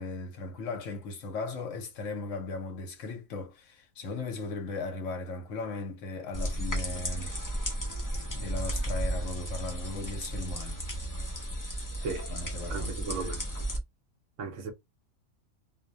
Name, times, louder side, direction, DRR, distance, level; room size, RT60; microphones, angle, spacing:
voice 1, 0.0-7.3 8.3-10.8 12.0-13.0, left 3 dB, 70° left, 1.1 m, -37 dB
sound 1, 6.3-13.8, right 1 dB, 20° left, 0.5 m, -34 dB
voice 2, 12.7-13.4 14.4-14.7, right 5 dB, 70° right, 1.0 m, -35 dB
2.5 x 2.1 x 2.6 m
omnidirectional pair, 1.4 m